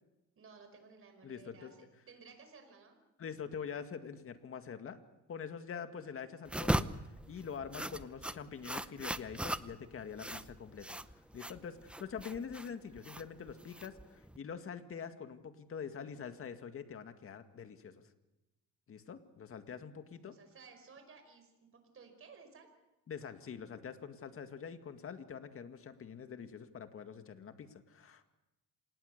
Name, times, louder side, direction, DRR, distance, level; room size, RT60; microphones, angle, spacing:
voice 1, 0.4-3.0 20.0-22.7, right 5 dB, 45° right, 6 dB, 5.2 m, -57 dB
voice 2, 1.2-1.7 3.2-5.0 5.3-11.0 11.3-18.0 18.9-20.3 23.1-28.3, left 7 dB, 45° left, 8 dB, 2.0 m, -45 dB
sound 1, 6.5-14.4, right 1 dB, 5° right, 0.8 m, -39 dB
27.0 x 19.0 x 6.7 m, 0.99 s
cardioid pair, 100°, 30 cm